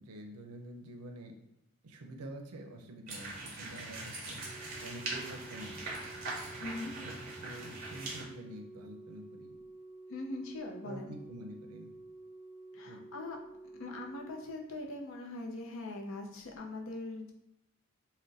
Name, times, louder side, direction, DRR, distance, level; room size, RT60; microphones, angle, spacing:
voice 1, 0.0-1.3 1.8-4.4 4.8-6.0 6.7-6.8 7.0-7.2 7.4-9.6 10.8-11.9 12.9-13.0, right 1 dB, 85° right, 4 dB, 0.5 m, -47 dB
sound 1, 3.1-8.2, right 2 dB, 40° right, 0.7 m, -42 dB
Organ, 4.4-15.3 16.4-16.6, right 2 dB, 5° left, 0.7 m, -51 dB
voice 2, 6.6-6.9 10.1-11.1 12.7-13.4 13.8-17.3, left 2 dB, 60° left, 1 dB, 0.5 m, -41 dB
2.4 x 2.1 x 3.9 m, 0.84 s
head